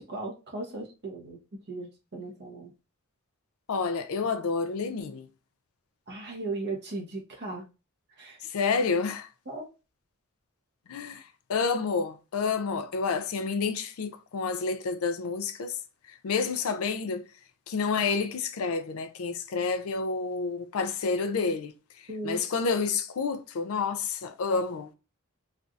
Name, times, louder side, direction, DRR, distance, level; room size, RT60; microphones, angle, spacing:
voice 1, 0.0-1.4 1.7-2.7 6.1-7.7 8.2-8.4 9.5-9.7 22.1-22.4, right 2 dB, 50° right, 1.1 m, -37 dB
voice 2, 3.7-5.3 8.4-9.3 10.9-15.8 16.2-17.2 17.7-21.7 22.2-24.9, left 4 dB, 75° left, 0.4 m, -29 dB
3.2 x 2.6 x 2.4 m
head